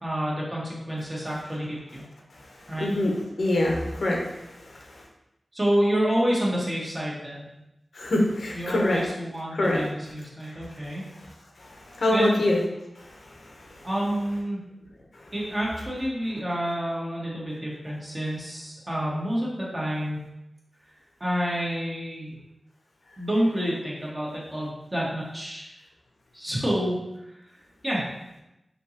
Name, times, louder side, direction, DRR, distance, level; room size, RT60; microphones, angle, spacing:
voice 1, 0.0-2.0 2.7-2.9 5.5-7.5 8.5-11.0 12.1-12.4 13.8-14.6 15.3-20.3 21.2-22.4 23.2-25.7 26.3-27.0 27.3-27.4 27.8-28.1, equal, 30° right, -5 dB, 1.3 m, -28 dB
voice 2, 2.8-5.0 7.9-9.1 9.5-9.8 10.4-10.7 11.6-12.6 13.0-14.1, left 1 dB, 80° left, -1 dB, 0.7 m, -26 dB
3.5 x 2.8 x 2.8 m, 0.91 s
cardioid pair, 45°, 0 cm